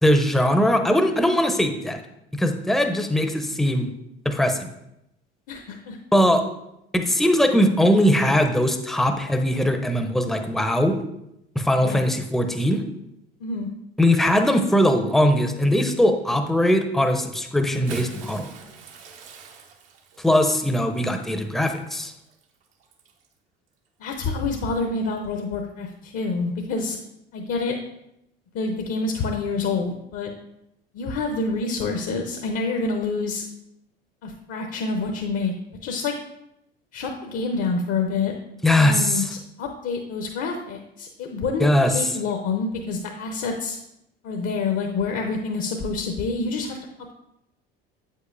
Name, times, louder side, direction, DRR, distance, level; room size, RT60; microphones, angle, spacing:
voice 1, 0.0-2.0 2.3-3.9 4.2-4.7 6.1-6.4 6.9-11.0 11.6-12.8 14.0-18.5 20.2-22.1 38.6-39.3 41.6-42.1, left 1 dB, ahead, 6 dB, 0.6 m, -20 dB
voice 2, 5.5-6.0 11.8-12.0 13.4-13.7 24.0-27.0 27.3-27.8 28.5-30.3 30.9-33.4 34.2-35.5 35.8-36.1 36.9-38.3 38.8-43.8 44.2-46.8, left 4 dB, 50° left, 3 dB, 0.7 m, -27 dB
Bathtub (filling or washing) / Splash splatter, 17.6-23.3 24.2-24.4 25.8-25.9, right 4 dB, 70° right, 0.9 m, -43 dB
7.7 x 5.5 x 2.5 m, 0.83 s
figure-of-eight pair, 60°, 30 cm